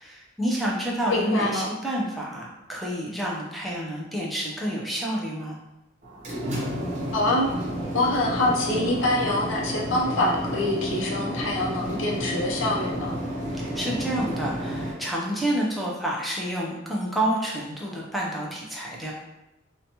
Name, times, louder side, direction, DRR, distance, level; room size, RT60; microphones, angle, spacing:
voice 1, 0.0-5.6 13.5-19.1, right 1 dB, ahead, -4 dB, 0.4 m, -29 dB
voice 2, 1.1-1.7 7.1-7.5 7.9-13.2, left 2 dB, 75° left, -2 dB, 0.6 m, -25 dB
sound 1, 6.0-14.9, equal, 35° right, 0.7 m, -31 dB
2.8 x 2.2 x 2.8 m, 0.96 s
head